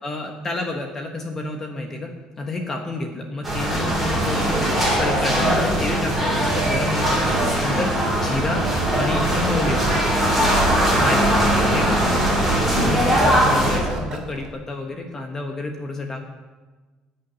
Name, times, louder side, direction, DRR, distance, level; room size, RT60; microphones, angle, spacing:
voice 1, 0.0-2.1 2.4-8.6 8.9-9.8 10.9-11.3 11.7-16.2, left 2 dB, 20° left, 2 dB, 1.2 m, -29 dB
sound 1, 3.4-13.8, right 1 dB, ahead, 5.0 m, -20 dB
sound 2, 8.6-14.5, right 3 dB, 35° right, 2.3 m, -34 dB
15.0 x 6.9 x 9.3 m, 1.3 s
cardioid pair, 165°, 2 cm